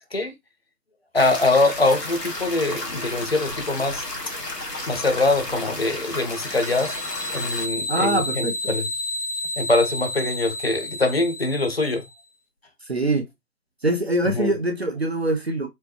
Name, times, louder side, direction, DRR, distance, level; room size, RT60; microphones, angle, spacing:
voice 1, 1.1-4.0 4.9-6.9 7.3-8.8 9.6-12.0 14.4-14.5, left 2 dB, 40° left, 0.5 m, -23 dB
sound 1, 1.2-7.7, left 2 dB, 85° left, 1.3 m, -32 dB
sound 2, 6.1-12.1, left 1 dB, 65° left, 1.6 m, -31 dB
voice 2, 7.9-8.8 12.9-13.3 13.8-15.7, right 1 dB, 45° right, 0.4 m, -23 dB
4.4 x 2.1 x 2.8 m
figure-of-eight pair, 145°, 47 cm